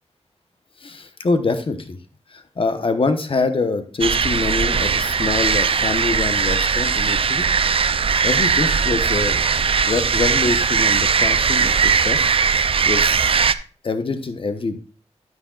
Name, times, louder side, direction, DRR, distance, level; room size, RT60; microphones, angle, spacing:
voice 1, 0.8-2.0 2.3-7.5 8.2-9.4 9.9-12.2 12.6-13.2 13.8-14.8, left 3 dB, 50° left, 8 dB, 1.0 m, -24 dB
sound 1, 4.0-13.5, right 6 dB, 55° right, 0.4 m, -19 dB
9.5 x 9.0 x 2.4 m, 0.38 s
wide cardioid pair, 80°, 12 cm